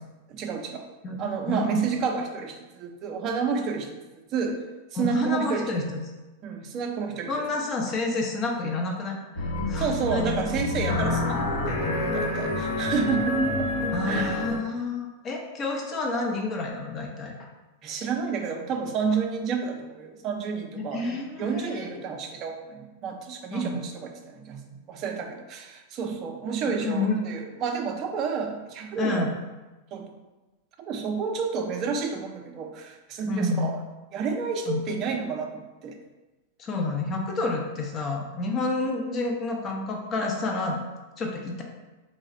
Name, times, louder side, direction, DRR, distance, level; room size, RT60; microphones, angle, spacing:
voice 1, 0.3-0.9 1.2-4.0 4.3-4.6 4.9-5.9 6.4-7.5 9.8-13.7 14.1-14.4 17.8-29.3 29.9-30.1 30.8-33.7 34.1-36.0, right 5 dB, 40° right, 4 dB, 0.5 m, -30 dB
voice 2, 1.5-1.8 5.0-5.8 7.3-10.4 13.9-17.3 20.9-22.0 23.5-23.8 26.6-27.2 29.0-29.3 33.3-33.7 34.7-34.8 36.6-40.8 41.2-41.6, left 3 dB, 30° left, 1 dB, 0.6 m, -29 dB
sound 1, 9.4-14.6, left 2 dB, 65° left, 0.8 m, -27 dB
3.2 x 2.1 x 3.7 m, 1.1 s
hypercardioid pair, 120°, 0 cm